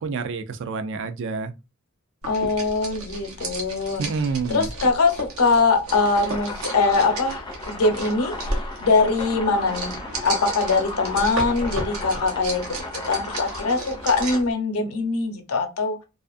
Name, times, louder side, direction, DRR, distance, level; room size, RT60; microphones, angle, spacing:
voice 1, 0.0-1.5 4.0-4.7, right 4 dB, 60° right, 0.4 m, -28 dB
sound 1, 2.2-14.5, right 2 dB, 80° right, 0.8 m, -34 dB
voice 2, 2.3-4.0 4.5-8.3 8.8-12.6 13.1-16.0, left 3 dB, 85° left, 0.7 m, -22 dB
sound 2, 5.9-14.4, left 2 dB, 20° left, 0.4 m, -35 dB
2.5 x 2.4 x 2.4 m
head